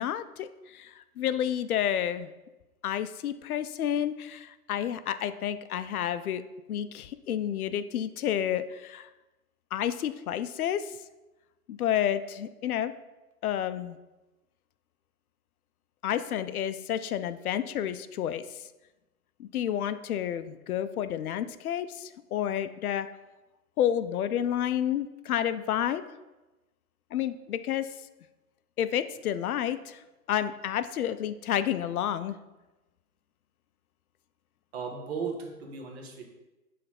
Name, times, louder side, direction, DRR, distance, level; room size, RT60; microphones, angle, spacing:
voice 1, 0.0-2.3 2.8-6.4 6.7-9.1 9.7-10.8 11.7-12.9 13.4-14.0 16.0-18.4 19.4-23.1 23.8-26.0 27.1-27.9 28.8-30.0 30.3-32.3, left 10 dB, 70° left, 13 dB, 0.5 m, -30 dB
voice 2, 34.7-36.2, right 5 dB, 45° right, 1 dB, 1.3 m, -36 dB
6.6 x 3.3 x 5.8 m, 1.1 s
hypercardioid pair, 165°, 45 cm